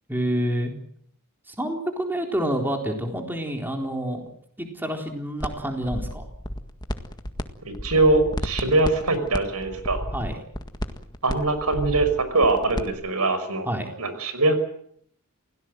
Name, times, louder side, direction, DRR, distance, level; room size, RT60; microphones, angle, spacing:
voice 1, 0.1-0.7 1.5-4.2 4.6-6.2 10.1-10.4 13.6-13.9, equal, 10° right, 3 dB, 3.9 m, -28 dB
sound 1, 5.4-5.5 5.8-7.4 7.7-12.9, equal, 20° left, 1.8 m, -31 dB
voice 2, 7.7-10.0 11.2-13.7 14.0-14.5, right 2 dB, 90° right, 10 dB, 5.6 m, -22 dB
28.5 x 17.5 x 7.8 m, 0.65 s
head